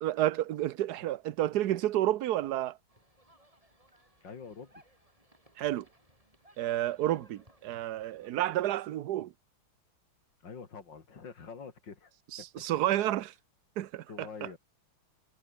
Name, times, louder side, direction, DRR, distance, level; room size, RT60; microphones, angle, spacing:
voice 1, 0.0-2.8 5.6-5.9 6.6-9.3 12.3-13.3 13.8-14.3, right 13 dB, 60° right, 1.1 m, -30 dB
sound 1, 2.9-8.3, right 1 dB, 15° right, 5.9 m, -62 dB
voice 2, 4.2-4.8 10.4-12.7 14.1-14.6, left 5 dB, 55° left, 3.4 m, -46 dB
omnidirectional pair, 2.3 m